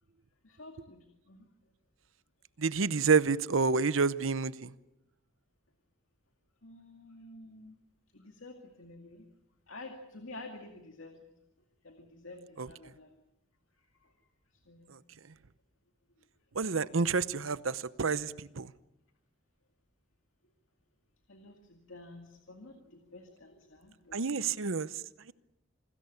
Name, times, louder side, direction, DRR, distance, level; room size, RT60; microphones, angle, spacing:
voice 1, 0.4-1.5 6.6-7.8 8.1-9.3 9.7-11.3 11.8-13.2 13.7-14.9 21.3-24.2, left 2 dB, 70° left, 4 dB, 2.3 m, -50 dB
voice 2, 2.6-4.7 12.6-12.7 14.9-15.0 16.5-18.7 24.1-24.9, right 4 dB, 75° right, 16 dB, 0.8 m, -29 dB
27.5 x 20.5 x 7.1 m, 0.90 s
head